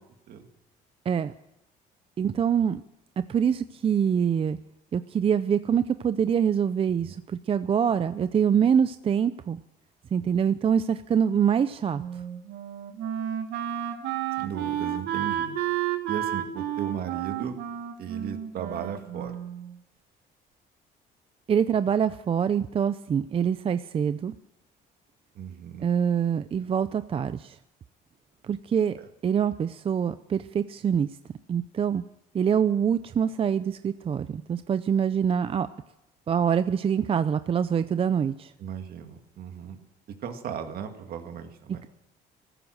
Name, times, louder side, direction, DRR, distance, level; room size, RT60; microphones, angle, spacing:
voice 1, 2.2-2.8 3.3-4.6 4.9-9.6 10.1-12.0 21.5-24.3 25.8-27.6 28.4-29.0 29.2-31.1 31.5-32.0 32.3-35.7 36.3-38.5, right 8 dB, 35° right, 12 dB, 0.5 m, -25 dB
Wind instrument woodwind instrument, 11.9-19.7, right 11 dB, 85° right, 1.8 m, -31 dB
voice 2, 14.4-15.6 16.1-17.6 18.0-19.4 25.3-25.9 38.6-39.8 40.2-41.8, right 8 dB, 65° right, 6 dB, 2.1 m, -36 dB
15.0 x 14.0 x 6.4 m, 0.87 s
cardioid pair, 110°, 17 cm